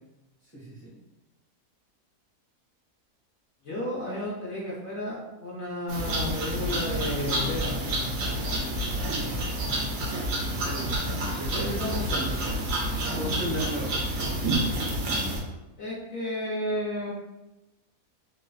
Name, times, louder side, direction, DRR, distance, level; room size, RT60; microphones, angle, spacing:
voice 1, 0.5-0.9 10.4-11.0 11.4-12.4 13.1-13.9, equal, 30° right, -10 dB, 0.8 m, -34 dB
voice 2, 3.6-8.0 11.5-11.7 15.8-17.1, left 1 dB, 55° left, -7 dB, 0.9 m, -32 dB
sound 1, 5.9-15.4, right 1 dB, 70° right, 0.9 m, -29 dB
sound 2, 6.5-15.5, right 2 dB, 90° left, 1.1 m, -39 dB
3.1 x 2.4 x 2.3 m, 0.99 s
omnidirectional pair, 1.7 m